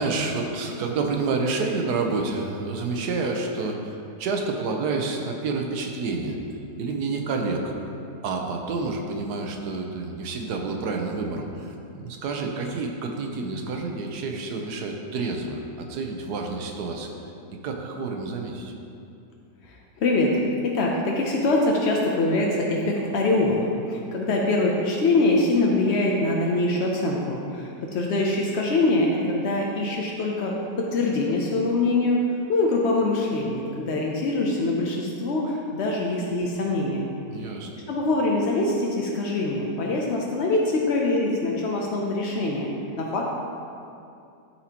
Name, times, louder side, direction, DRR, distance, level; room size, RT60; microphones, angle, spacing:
voice 1, 0.0-6.4 6.8-7.9 8.2-17.1 17.6-18.7 37.3-37.7, right 3 dB, 70° right, 2 dB, 1.2 m, -29 dB
voice 2, 19.7-20.3 20.6-32.2 32.5-37.1 37.9-42.7 43.0-43.2, left 2 dB, 75° left, -1 dB, 0.6 m, -24 dB
12.0 x 4.3 x 2.9 m, 2.6 s
omnidirectional pair, 1.9 m